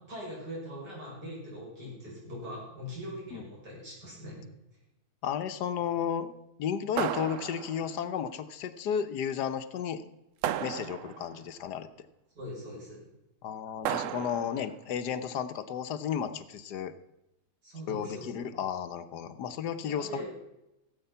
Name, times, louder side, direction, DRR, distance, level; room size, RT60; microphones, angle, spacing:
voice 1, 0.1-4.4 12.3-13.0 17.6-18.3 19.8-20.3, equal, 85° right, -5 dB, 6.7 m, -41 dB
voice 2, 5.2-6.3 6.6-10.1 10.6-11.9 13.4-16.9 17.9-20.2, left 8 dB, 75° left, 11 dB, 1.4 m, -33 dB
sound 1, 7.0-8.0 10.4-11.4 13.8-14.7, right 11 dB, 65° right, 0.8 m, -34 dB
16.5 x 8.1 x 5.6 m, 0.90 s
omnidirectional pair, 1.8 m